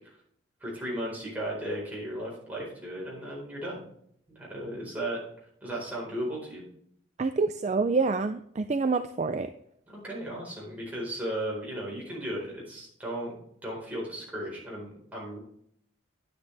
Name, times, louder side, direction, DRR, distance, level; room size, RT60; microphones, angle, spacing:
voice 1, 0.6-3.8 4.3-5.2 5.6-6.7 9.9-15.4, right 1 dB, 10° right, -4 dB, 4.3 m, -35 dB
voice 2, 7.2-9.5, right 4 dB, 35° right, 9 dB, 0.3 m, -27 dB
10.0 x 9.5 x 3.3 m, 0.69 s
head